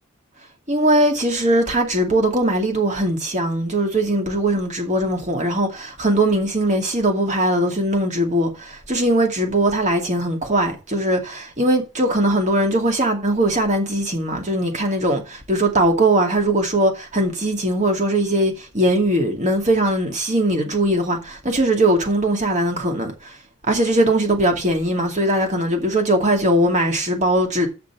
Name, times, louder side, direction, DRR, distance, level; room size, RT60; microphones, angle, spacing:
voice 1, 0.7-23.4 23.7-27.7, right 1 dB, 35° right, 2.4 m, -20 dB
7.6 x 6.0 x 7.1 m
head